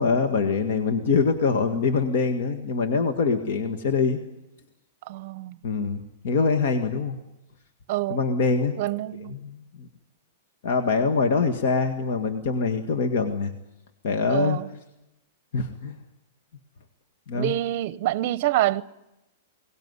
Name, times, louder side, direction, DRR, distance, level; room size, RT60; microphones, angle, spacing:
voice 1, 0.0-4.2 5.6-7.2 8.1-8.8 9.3-9.9 10.6-13.5 14.0-14.6 15.5-15.9 17.3-17.5, left 4 dB, 60° left, 1.8 m, -24 dB
voice 2, 5.1-5.6 7.9-8.2 8.8-9.4 14.3-14.7 17.3-18.8, right 15 dB, 45° right, 0.8 m, -26 dB
23.0 x 19.0 x 9.7 m
supercardioid pair, 165°, 0 cm